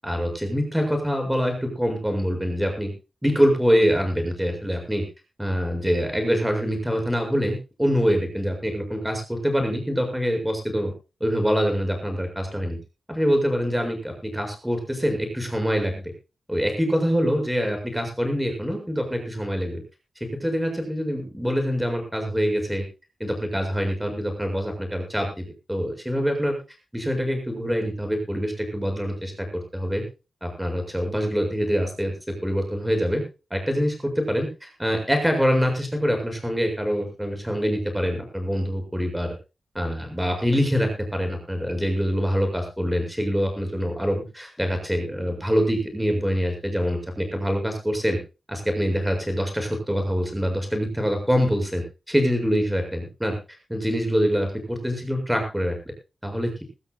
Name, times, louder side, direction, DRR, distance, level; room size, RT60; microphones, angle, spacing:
voice 1, 0.0-2.9 3.2-5.0 5.4-10.9 11.2-12.8 13.1-16.0 16.5-19.8 20.4-22.8 23.2-26.6 26.9-29.5 29.7-30.0 30.4-32.1 32.4-33.2 33.5-39.3 39.7-48.2 48.5-53.4 53.7-55.8 56.2-56.6, equal, 5° right, 4 dB, 7.0 m, -25 dB
22.5 x 14.5 x 2.4 m, 0.30 s
wide cardioid pair, 135°, 0 cm